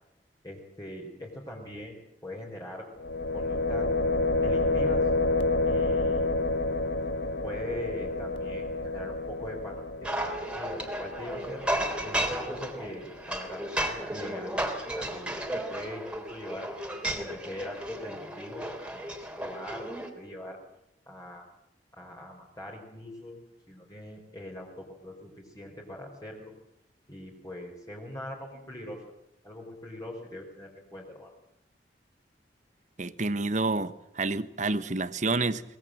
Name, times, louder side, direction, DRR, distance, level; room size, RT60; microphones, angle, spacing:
voice 1, 0.4-2.9 3.3-3.9 4.4-5.1 5.6-6.3 7.4-11.6 12.0-14.6 14.9-16.7 17.1-19.0 19.3-19.9 20.1-20.6 21.1-21.4 21.9-23.4 23.7-26.5 27.1-29.1 29.4-31.3, left 1 dB, 20° left, 4.4 m, -42 dB
sound 1, 3.0-12.8, left 2 dB, 90° left, 1.5 m, -29 dB
sound 2, 10.0-20.1, right 1 dB, 5° right, 3.3 m, -34 dB
voice 2, 33.0-35.6, right 3 dB, 40° right, 1.1 m, -29 dB
23.5 x 20.5 x 7.7 m
head